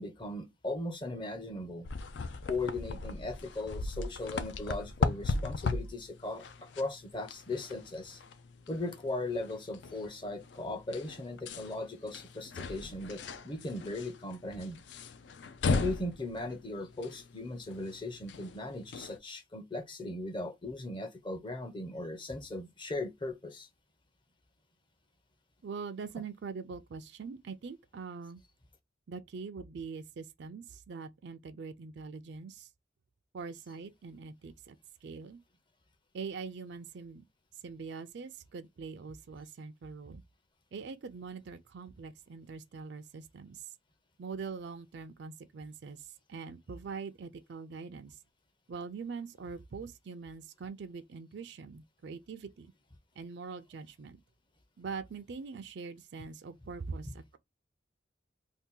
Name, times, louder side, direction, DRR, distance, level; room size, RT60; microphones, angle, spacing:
voice 1, 0.0-1.9 2.5-6.4 6.8-8.2 8.7-14.8 15.7-23.7, left 2 dB, 25° left, 0.6 m, -38 dB
sound 1, 1.8-19.2, left 4 dB, 65° left, 0.4 m, -38 dB
voice 2, 25.6-28.4 29.1-32.7 33.3-35.4 36.1-37.2 37.6-40.2 40.7-43.6 44.2-48.2 48.7-52.7 53.2-54.2 54.8-57.4, right 5 dB, 65° right, 0.4 m, -43 dB
2.8 x 2.5 x 3.7 m
head